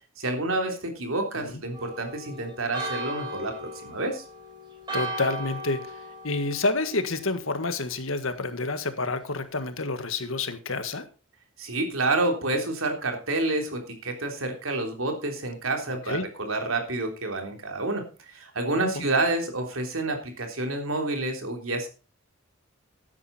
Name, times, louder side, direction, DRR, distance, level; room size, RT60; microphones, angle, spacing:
voice 1, 0.2-4.2 11.6-21.9, right 2 dB, 75° right, 3 dB, 3.4 m, -29 dB
Church bell, 1.7-7.5, right 1 dB, 20° right, 4.8 m, -37 dB
voice 2, 4.9-11.1 16.1-16.2 18.7-19.1, left 3 dB, 70° left, 10 dB, 1.6 m, -29 dB
13.0 x 9.8 x 4.3 m, 0.32 s
head